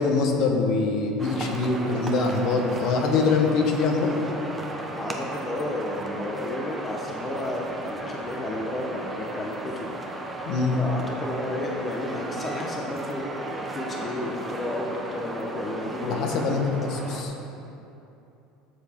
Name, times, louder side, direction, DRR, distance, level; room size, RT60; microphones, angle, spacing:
voice 1, 0.0-4.2 10.4-10.8 16.0-17.3, left 4 dB, 55° left, 2 dB, 1.1 m, -24 dB
sound 1, 1.2-17.2, right 2 dB, 10° right, 0.7 m, -35 dB
voice 2, 4.9-9.9 10.8-16.6, left 1 dB, 20° left, 0 dB, 0.8 m, -32 dB
12.5 x 7.0 x 3.6 m, 2.8 s
cardioid pair, 150°, 0 cm